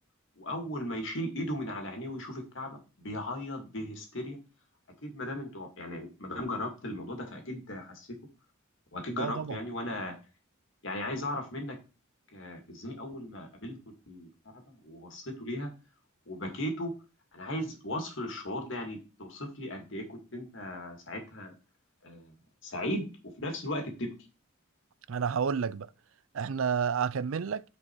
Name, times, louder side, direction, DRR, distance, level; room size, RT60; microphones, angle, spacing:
voice 1, 0.4-4.4 5.0-8.1 8.9-10.1 10.8-11.8 12.3-13.8 14.1-14.3 14.7-15.7 16.3-16.9 17.3-21.5 22.0-22.3 22.6-23.1 23.4-24.1, left 1 dB, 60° left, 2.3 m, -37 dB
voice 2, 9.2-9.6 25.1-25.9 26.3-27.6, right 6 dB, 70° right, 0.4 m, -30 dB
9.5 x 5.0 x 4.5 m
head